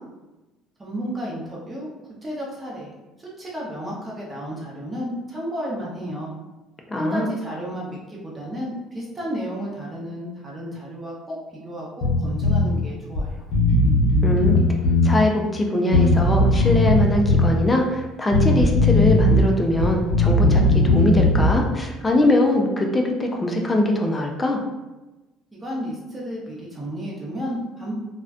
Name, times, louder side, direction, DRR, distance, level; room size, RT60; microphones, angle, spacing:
voice 1, 0.8-1.9 2.2-2.9 3.2-6.3 7.0-13.4 25.5-27.9, equal, 20° right, -4 dB, 0.7 m, -32 dB
voice 2, 6.9-7.3 14.2-14.6 15.0-24.6, left 1 dB, 15° left, 1 dB, 0.3 m, -22 dB
Bass guitar, 12.0-12.7 13.2-13.3 13.5-15.1 15.9-17.5 18.3-19.4 19.7-21.6, left 2 dB, 60° left, 0.6 m, -18 dB
2.4 x 2.1 x 2.4 m, 1.1 s
cardioid pair, 115°, 0 cm